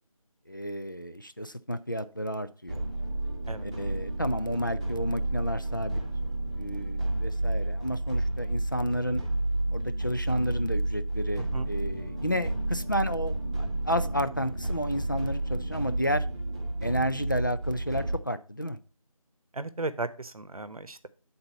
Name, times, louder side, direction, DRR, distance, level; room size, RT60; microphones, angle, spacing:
voice 1, 0.5-2.8 3.6-6.0 6.5-9.2 9.7-16.2 16.8-18.8, equal, 35° left, 0.4 m, -31 dB
sound 1, 2.7-18.2, right 1 dB, 10° right, 0.7 m, -31 dB
voice 2, 11.4-11.7 19.5-21.1, right 3 dB, 80° right, 0.9 m, -35 dB
7.8 x 4.0 x 5.5 m
figure-of-eight pair, 170°, 18 cm